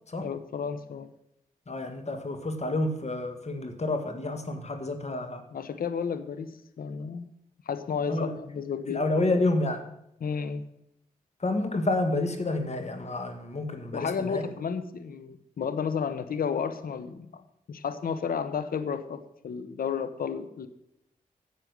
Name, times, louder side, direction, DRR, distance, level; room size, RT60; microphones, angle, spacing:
voice 1, 0.2-1.1 5.5-7.3 7.7-9.0 10.2-10.7 13.9-17.4 17.7-20.7, left 6 dB, 70° left, 12 dB, 0.9 m, -32 dB
voice 2, 1.7-5.4 8.1-8.4 8.9-9.9 11.4-14.4, left 2 dB, 45° left, 7 dB, 1.7 m, -29 dB
10.5 x 7.5 x 6.6 m, 0.81 s
supercardioid pair, 45°, 15 cm